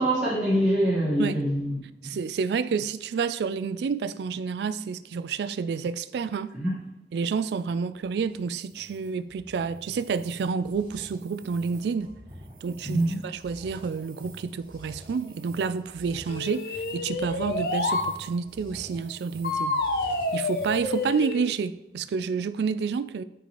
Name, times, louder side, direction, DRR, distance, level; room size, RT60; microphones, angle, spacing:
voice 1, 0.0-1.8 2.0-2.1 6.5-6.7 12.8-13.2, right 1 dB, 5° right, 1.6 m, -24 dB
voice 2, 2.0-6.5 7.1-12.1 12.6-19.8 20.3-23.2, right 5 dB, 70° right, 0.3 m, -29 dB
sound 1, 7.3-21.2, right 1 dB, 25° right, 1.7 m, -48 dB
sound 2, 16.3-18.1 19.4-21.5, left 2 dB, 60° left, 0.6 m, -28 dB
9.4 x 4.6 x 3.0 m
head